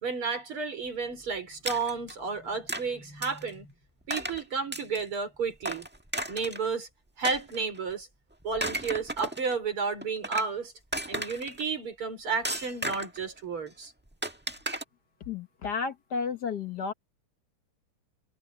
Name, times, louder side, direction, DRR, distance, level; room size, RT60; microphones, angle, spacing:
voice 1, 0.0-3.7 4.1-5.9 6.3-6.9 7.2-8.1 8.4-10.7 11.1-13.9, right 5 dB, 75° right, 5.4 m, -32 dB
sound 1, 1.6-2.1 2.7-2.8 3.2-3.5 4.1-4.4 4.7-5.1 5.6-6.7 7.2-7.9 8.4-9.5 10.0-10.5 10.9-11.6 12.4-13.2 14.2-14.8, right 1 dB, 5° right, 1.0 m, -34 dB
voice 2, 15.3-16.9, left 5 dB, 55° left, 1.6 m, -32 dB
omnidirectional pair, 2.4 m